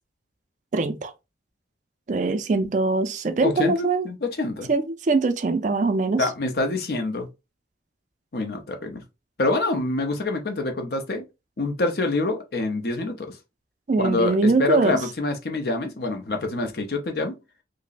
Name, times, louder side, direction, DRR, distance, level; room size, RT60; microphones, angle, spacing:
voice 1, 0.7-1.1 2.1-4.1 4.7-6.3 13.9-15.0, right 3 dB, 40° right, 0.3 m, -22 dB
voice 2, 3.4-4.7 6.2-7.3 8.3-9.0 9.4-11.2 11.6-13.4 14.0-17.4, left 2 dB, 55° left, 0.6 m, -26 dB
5.0 x 2.0 x 2.5 m
head